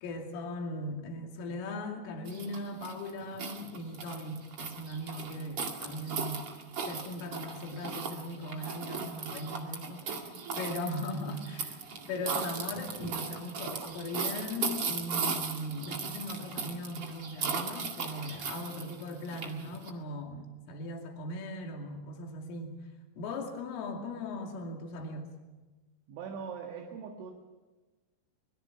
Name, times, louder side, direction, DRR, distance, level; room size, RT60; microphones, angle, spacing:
voice 1, 0.0-6.6 6.9-11.8 12.1-22.8 23.2-25.3, left 1 dB, 75° left, 2 dB, 5.0 m, -39 dB
sound 1, 2.2-19.9, right 5 dB, 50° right, 1.7 m, -37 dB
voice 2, 26.1-27.3, right 6 dB, 70° right, 1 dB, 4.1 m, -41 dB
25.5 x 21.5 x 5.9 m, 1.2 s
omnidirectional pair, 5.8 m